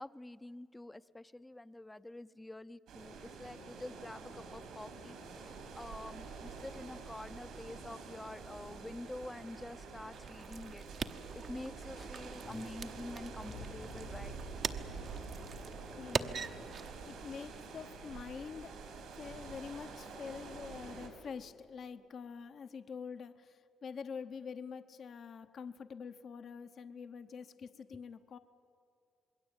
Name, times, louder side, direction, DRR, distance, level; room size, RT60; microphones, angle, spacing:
voice 1, 0.0-10.8 11.1-14.4, left 1 dB, 10° left, 14 dB, 0.6 m, -47 dB
sound 1, 2.9-21.1, right 4 dB, 85° right, 5.1 m, -47 dB
sound 2, 10.1-17.1, right 6 dB, 55° right, 1.0 m, -43 dB
sound 3, 10.7-18.9 19.1-19.2, left 6 dB, 80° left, 4.4 m, -55 dB
voice 2, 15.6-18.8 19.1-28.4, left 6 dB, 55° left, 9 dB, 0.9 m, -46 dB
27.0 x 21.5 x 8.9 m, 2.6 s
cardioid pair, 90°, 0 cm